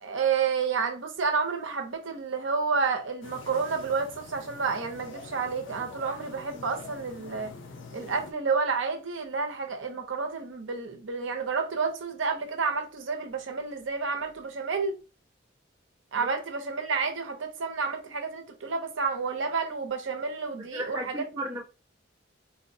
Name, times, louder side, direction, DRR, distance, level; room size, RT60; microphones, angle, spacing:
voice 1, 0.0-7.5 7.9-14.9 16.1-21.3, right 5 dB, 70° right, 0.6 m, -30 dB
sound 1, 3.2-8.3, left 3 dB, 65° left, 0.5 m, -45 dB
voice 2, 20.6-21.6, right 1 dB, 15° right, 0.5 m, -35 dB
4.1 x 2.1 x 2.6 m
head